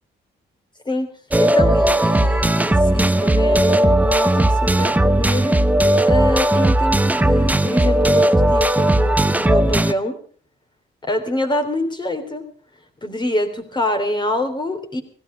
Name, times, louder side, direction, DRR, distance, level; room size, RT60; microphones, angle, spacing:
sound 1, 1.3-9.9, right 1 dB, 10° right, 0.8 m, -16 dB
voice 1, 1.4-5.6 6.0-10.2 11.0-12.4 13.0-15.0, left 1 dB, 20° left, 5 dB, 3.5 m, -25 dB
16.5 x 16.0 x 5.2 m, 0.43 s
cardioid pair, 90°, 20 cm